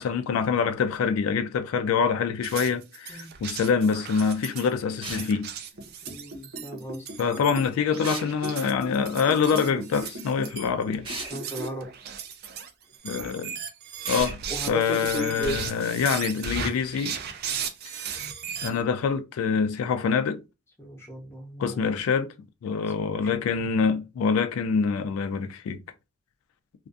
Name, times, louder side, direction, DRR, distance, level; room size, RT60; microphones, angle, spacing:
voice 1, 0.0-5.5 7.2-11.1 13.0-13.6 14.1-14.4 14.7-17.2 17.9-18.2 18.6-20.4 21.6-22.3 22.6-25.8, left 6 dB, 85° left, 0.3 m, -25 dB
sound 1, 2.4-18.8, right 7 dB, 50° right, 0.4 m, -36 dB
sound 2, 5.0-5.3 8.0-8.3 11.0-11.3 14.0-14.4, right 2 dB, 25° right, 0.7 m, -35 dB
Liquid, 5.7-11.9 12.2-12.3, equal, 75° right, 0.7 m, -39 dB
voice 2, 6.0-7.1 11.3-11.9 14.5-15.6 20.8-21.8 23.1-23.5, right 1 dB, 10° left, 0.6 m, -35 dB
2.4 x 2.2 x 2.5 m
head